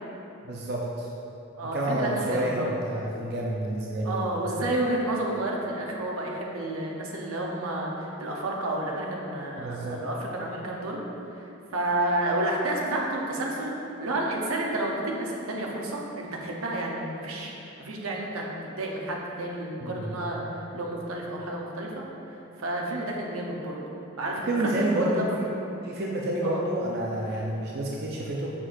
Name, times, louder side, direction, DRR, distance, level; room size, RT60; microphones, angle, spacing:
voice 1, 0.4-1.1 1.7-4.2 9.6-10.0 19.8-20.3 24.4-25.5 25.8-28.5, right 1 dB, 50° right, -3 dB, 0.5 m, -29 dB
voice 2, 1.6-2.6 4.0-11.0 11.3-11.5 11.7-13.7 14.0-20.4 20.7-22.1 22.6-23.8 24.2-24.9 25.2-25.3 26.4-26.7, right 1 dB, 85° right, -1 dB, 0.8 m, -30 dB
6.1 x 6.1 x 2.6 m, 2.9 s
head